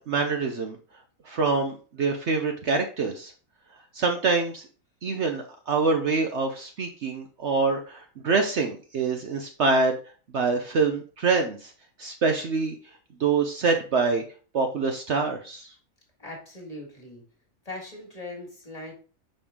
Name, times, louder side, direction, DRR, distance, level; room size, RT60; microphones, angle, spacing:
voice 1, 0.1-0.8 1.2-3.3 3.9-4.7 5.0-10.0 10.3-11.7 12.0-12.7 13.2-14.2 14.5-15.7, right 4 dB, 60° right, 4 dB, 1.0 m, -25 dB
voice 2, 16.2-17.2 17.6-18.9, left 2 dB, 25° left, -1 dB, 2.0 m, -40 dB
6.6 x 5.2 x 3.6 m, 0.38 s
omnidirectional pair, 1.5 m